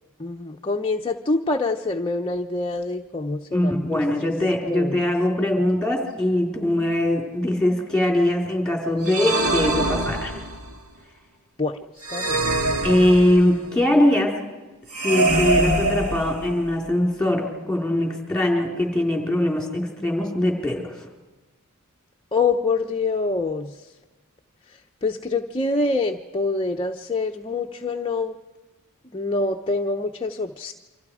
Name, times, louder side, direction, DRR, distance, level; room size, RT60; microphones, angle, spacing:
voice 1, 0.2-4.3 4.7-5.1 11.6-12.4 22.3-23.9 24.7-28.4 29.1-30.7, left 3 dB, 25° left, 2 dB, 0.8 m, -26 dB
voice 2, 3.5-10.3 12.8-14.3 15.0-20.9, left 1 dB, 5° left, 0 dB, 4.3 m, -21 dB
sound 1, 9.0-10.7 12.0-13.7 14.9-16.8, right 2 dB, 80° right, 2.2 m, -24 dB
28.5 x 25.5 x 4.9 m, 1.2 s
head